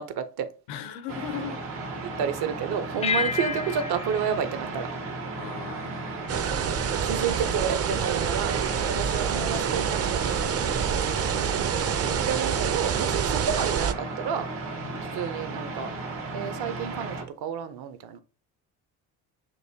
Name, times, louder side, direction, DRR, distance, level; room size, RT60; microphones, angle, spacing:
voice 1, 0.0-0.5 2.0-4.9 7.0-10.6 12.3-14.5 15.1-15.9 16.3-18.2, right 7 dB, 65° right, 0.8 m, -30 dB
voice 2, 0.7-1.6 5.3-6.3 8.8-9.3 11.0-12.0 14.8-15.1, left 8 dB, 80° left, 0.7 m, -40 dB
sound 1, 1.1-17.2, right 3 dB, 90° right, 1.5 m, -35 dB
sound 2, 3.0-5.8, left 6 dB, 15° left, 0.4 m, -32 dB
sound 3, 6.3-13.9, right 7 dB, 40° right, 0.5 m, -27 dB
6.3 x 2.7 x 2.7 m
supercardioid pair, 65°, 40 cm